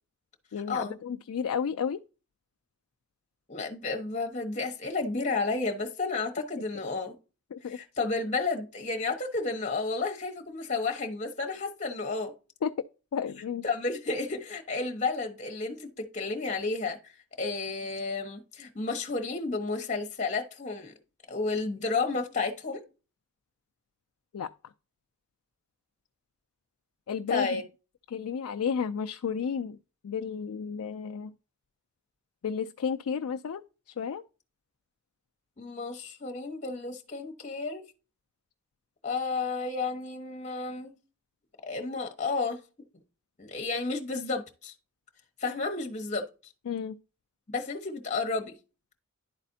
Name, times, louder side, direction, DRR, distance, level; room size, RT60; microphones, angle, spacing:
voice 1, 0.5-2.0 7.5-7.8 12.6-12.8 13.1-13.6 24.3-24.5 27.1-27.6 28.1-29.8 30.0-31.3 32.4-34.2 46.7-47.0, left 7 dB, 75° left, 0.4 m, -32 dB
voice 2, 3.5-7.2 7.7-12.3 13.6-17.1 17.4-20.9 21.3-22.8 27.3-27.6 35.6-37.8 39.0-40.9 41.6-42.6 43.4-44.7 45.4-46.5 47.5-48.5, left 3 dB, 30° left, 1.1 m, -32 dB
11.0 x 4.1 x 2.7 m
head